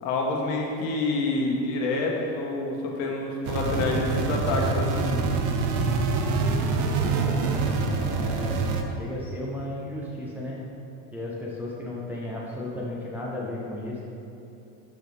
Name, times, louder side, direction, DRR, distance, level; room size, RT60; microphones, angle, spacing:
voice 1, 0.0-5.2, left 2 dB, 65° left, -1 dB, 1.5 m, -27 dB
sound 1, 3.4-8.8, right 4 dB, 50° right, 0.7 m, -25 dB
voice 2, 7.0-8.7 9.0-10.6 11.1-14.0, left 1 dB, 5° right, -6 dB, 0.4 m, -35 dB
12.0 x 6.0 x 3.5 m, 2.8 s
cardioid pair, 180°, 38 cm